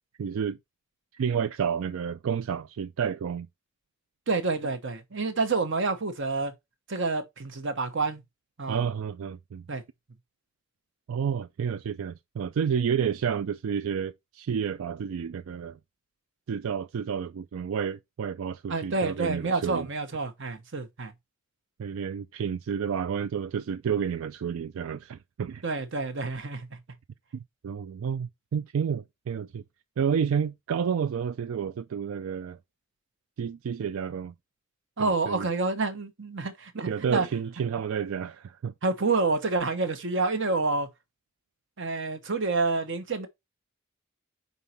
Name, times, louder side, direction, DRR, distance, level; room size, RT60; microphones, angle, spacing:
voice 1, 0.2-0.6 1.1-3.5 8.7-9.7 11.1-15.8 16.5-19.9 21.8-25.6 27.3-29.6 30.0-32.6 33.4-34.3 35.0-35.5 36.9-38.7, right 7 dB, 90° right, 0.4 m, -30 dB
voice 2, 4.3-6.5 6.9-8.2 8.6-8.8 9.7-9.8 18.7-21.1 25.6-26.7 35.0-37.3 38.8-40.9 41.8-43.3, right 3 dB, 65° right, 1.1 m, -28 dB
5.4 x 4.1 x 4.3 m
head